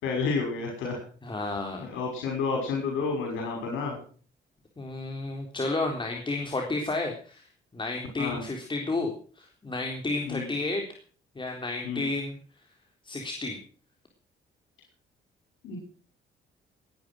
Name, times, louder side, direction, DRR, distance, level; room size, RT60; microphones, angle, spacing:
voice 1, 0.0-1.0 1.8-4.0 8.2-8.4 10.3-10.5 11.8-12.1 15.6-15.8, left 4 dB, 90° left, 2 dB, 6.0 m, -30 dB
voice 2, 1.2-1.9 4.8-7.5 7.7-9.1 9.4-10.9 11.4-12.4 13.0-13.6, left 2 dB, 25° left, 2 dB, 3.7 m, -31 dB
19.5 x 10.5 x 6.3 m, 0.43 s
cardioid pair, 90°, 20 cm